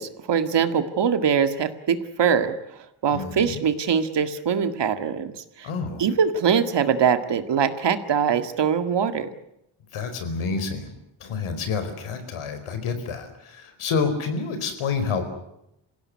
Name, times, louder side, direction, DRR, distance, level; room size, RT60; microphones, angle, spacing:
voice 1, 0.0-2.5 3.0-5.7 6.0-9.3, right 7 dB, 60° right, 9 dB, 2.0 m, -23 dB
voice 2, 3.1-3.6 5.6-6.0 9.9-10.9 11.2-15.3, left 5 dB, 90° left, 8 dB, 4.7 m, -28 dB
27.5 x 16.5 x 9.7 m, 0.82 s
wide cardioid pair, 130°, 48 cm